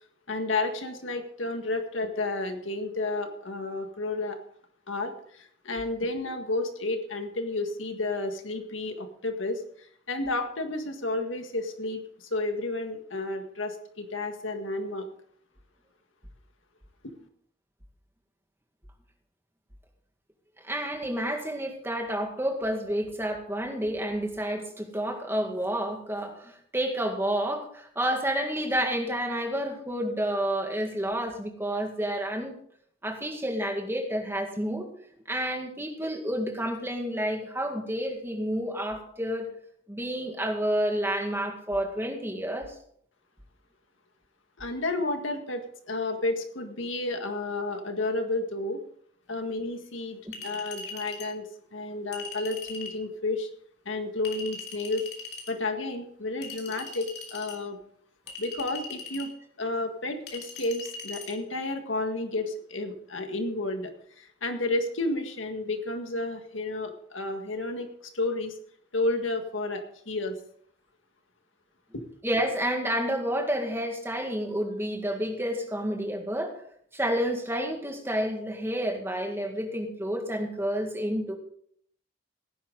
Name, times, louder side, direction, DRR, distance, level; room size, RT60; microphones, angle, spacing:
voice 1, 0.3-4.4 4.9-9.6 10.1-15.1 44.6-48.8 49.3-53.5 53.9-55.0 55.5-57.8 58.4-59.3 59.6-63.9 64.2-68.5 68.9-70.3 71.9-72.0, left 2 dB, 80° left, 5 dB, 1.9 m, -31 dB
voice 2, 20.6-32.5 33.0-34.9 35.3-39.5 39.9-42.8 50.2-50.3 72.2-76.5 76.9-81.3, equal, 10° right, 2 dB, 2.0 m, -30 dB
Chink clink, 50.3-51.3 52.1-53.0 54.2-55.5 56.4-57.6 58.3-59.3 60.3-61.3, left 4 dB, 55° left, 3.0 m, -40 dB
17.5 x 10.0 x 4.0 m, 0.64 s
head